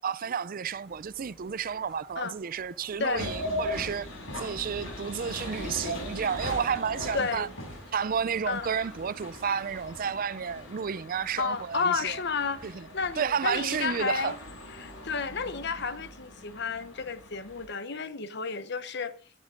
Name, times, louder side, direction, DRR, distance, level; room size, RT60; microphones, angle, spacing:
voice 1, 0.0-4.1 4.4-7.5 7.9-12.2 12.6-12.9 13.2-14.4, right 7 dB, 45° right, 0.5 m, -31 dB
sound 1, 0.6-9.9, right 1 dB, 5° right, 6.0 m, -55 dB
sound 2, 3.1-17.7, left 1 dB, 90° left, 7.0 m, -40 dB
voice 2, 7.1-7.5 8.5-8.7 11.4-14.4 14.8-19.1, left 5 dB, 60° left, 1.0 m, -31 dB
17.0 x 7.4 x 3.8 m
head